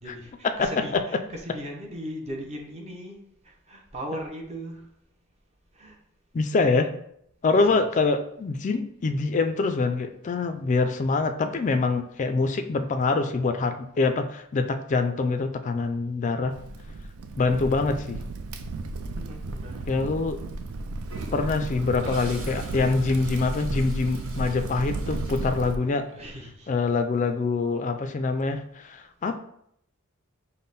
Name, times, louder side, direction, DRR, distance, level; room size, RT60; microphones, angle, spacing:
voice 1, 0.0-3.2 3.4-4.9 5.7-6.0 7.5-7.9 17.4-18.0 19.2-19.8 26.1-26.7, equal, 30° right, 0 dB, 0.7 m, -38 dB
voice 2, 6.3-6.9 7.4-16.6 17.4-18.2 19.9-20.4 21.3-26.1 26.7-29.4, left 3 dB, 35° left, 7 dB, 0.3 m, -25 dB
Crackle, 16.5-25.8, right 2 dB, 80° right, 0.4 m, -34 dB
Toilet flush, 21.1-26.1, right 3 dB, 65° right, 0.8 m, -46 dB
5.4 x 2.1 x 4.0 m, 0.72 s
head